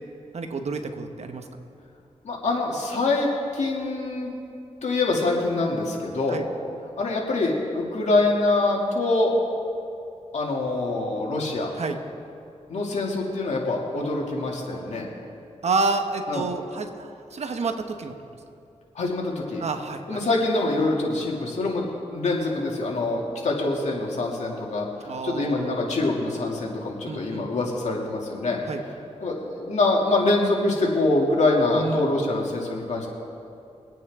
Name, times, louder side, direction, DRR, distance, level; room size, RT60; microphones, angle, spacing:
voice 1, 0.3-1.5 6.3-6.4 11.8-12.0 15.6-18.1 19.6-20.2 25.1-25.9 27.1-27.7 28.7-28.8 31.7-32.3, right 3 dB, 65° right, 6 dB, 1.1 m, -29 dB
voice 2, 2.2-4.3 4.8-6.4 7.0-9.3 10.3-11.7 12.7-15.1 16.3-16.5 18.9-19.6 20.1-28.6 29.2-33.1, left 2 dB, 70° left, -2 dB, 2.5 m, -25 dB
24.0 x 9.1 x 3.7 m, 2.6 s
cardioid pair, 80°, 12 cm